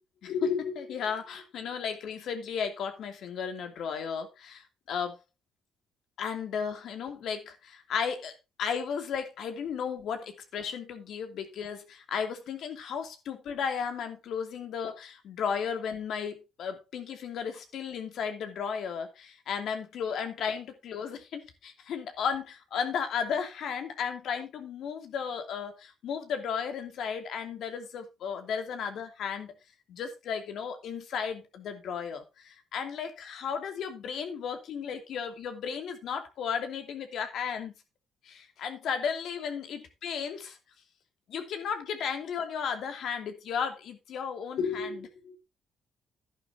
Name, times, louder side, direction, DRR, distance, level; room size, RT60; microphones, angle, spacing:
voice 1, 0.2-5.2 6.2-8.3 8.6-29.5 29.9-37.7 38.2-40.6 41.3-45.4, left 7 dB, 75° left, 2.8 m, -34 dB
11.0 x 11.0 x 2.8 m
cardioid pair, 90°, 0 cm